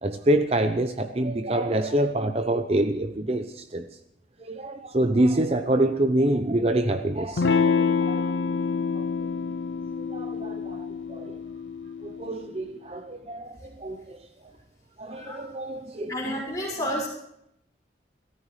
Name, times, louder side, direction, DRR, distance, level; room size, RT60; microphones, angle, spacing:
voice 1, 0.0-3.9 4.5-7.6 8.1-8.3 9.0-9.1 10.1-11.4 12.0-14.2 15.0-16.4, right 1 dB, 35° right, 8 dB, 0.7 m, -26 dB
Electric guitar / Strum, 7.4-12.5, left 5 dB, 85° left, 0.5 m, -27 dB
voice 2, 15.1-15.4 16.1-17.1, equal, 20° left, -2 dB, 6.3 m, -30 dB
29.5 x 14.0 x 3.3 m, 0.78 s
head